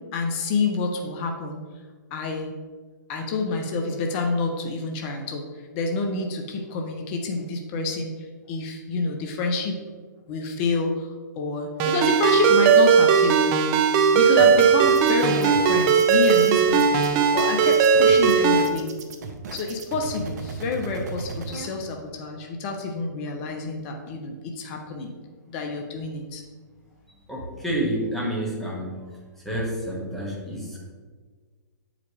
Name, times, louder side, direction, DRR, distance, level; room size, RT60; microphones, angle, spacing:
voice 1, 0.1-1.6 2.1-2.5 3.1-5.4 5.7-8.1 8.5-9.8 10.3-13.4 14.1-18.9 19.5-25.1 25.5-26.4, left 3 dB, 35° left, 3 dB, 0.9 m, -28 dB
Ringtone, 11.8-18.7, right 6 dB, 30° right, 0.5 m, -18 dB
sound 1, 14.4-21.7, right 5 dB, 60° right, 0.9 m, -37 dB
voice 2, 27.1-29.0 29.4-30.9, right 1 dB, ahead, -4 dB, 1.6 m, -29 dB
8.0 x 5.0 x 3.3 m, 1.5 s
hypercardioid pair, 130°, 10 cm